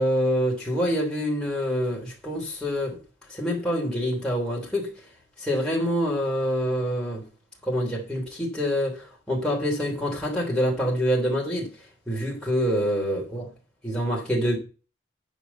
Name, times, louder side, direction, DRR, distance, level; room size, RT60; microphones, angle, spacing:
voice 1, 0.0-3.0 3.3-4.9 5.4-7.3 7.6-11.7 12.1-13.5 13.8-14.6, equal, 5° left, 3.2 m, -26 dB
10.0 x 5.2 x 6.9 m
head